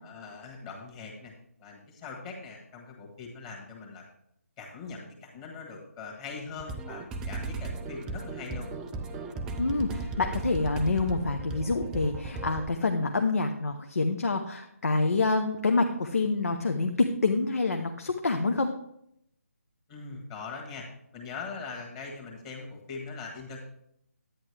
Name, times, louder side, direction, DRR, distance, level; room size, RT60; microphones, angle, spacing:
voice 1, 0.0-1.3 1.6-4.0 4.6-8.7 19.9-20.9 21.1-23.7, left 4 dB, 20° left, -1 dB, 1.6 m, -41 dB
sound 1, 6.6-12.7, right 3 dB, 5° right, 0.3 m, -36 dB
voice 2, 9.6-18.7, left 3 dB, 70° left, 5 dB, 0.9 m, -27 dB
10.5 x 9.1 x 3.4 m, 0.75 s
figure-of-eight pair, 155°, 8 cm